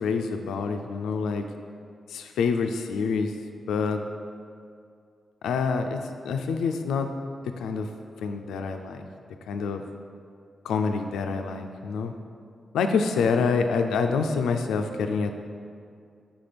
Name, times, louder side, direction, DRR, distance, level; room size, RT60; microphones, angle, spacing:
voice 1, 0.0-1.4 2.1-3.4 3.7-4.0 5.4-7.1 7.4-7.9 8.2-9.1 9.5-9.8 10.6-12.1 12.7-15.3, left 5 dB, 90° left, 6 dB, 0.3 m, -26 dB
5.6 x 4.2 x 5.1 m, 2.3 s
supercardioid pair, 50°, 0 cm